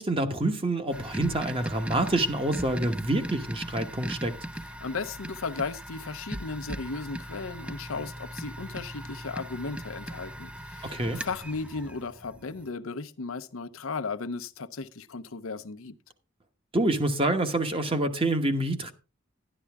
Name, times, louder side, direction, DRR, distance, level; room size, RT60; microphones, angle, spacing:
voice 1, 0.0-4.3 10.8-11.2 16.7-18.9, right 1 dB, 25° right, 1.1 m, -27 dB
sound 1, 0.9-12.7, right 1 dB, 5° right, 0.4 m, -39 dB
voice 2, 4.8-15.9, left 4 dB, 85° left, 0.8 m, -35 dB
11.5 x 11.5 x 3.5 m
head